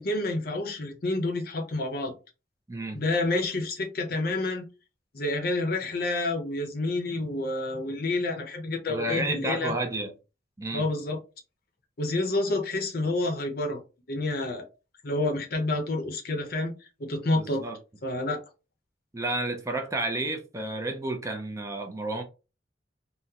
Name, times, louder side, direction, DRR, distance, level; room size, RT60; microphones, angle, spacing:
voice 1, 0.0-2.1 2.9-4.7 5.1-9.7 10.7-11.2 12.0-13.8 14.1-14.6 15.0-16.7 17.0-17.6 18.0-18.4, left 2 dB, 55° left, 0.7 m, -28 dB
voice 2, 2.7-3.0 8.9-10.1 10.6-10.9 17.3-17.8 19.1-22.2, right 2 dB, 15° right, 0.5 m, -31 dB
3.7 x 2.0 x 2.8 m
head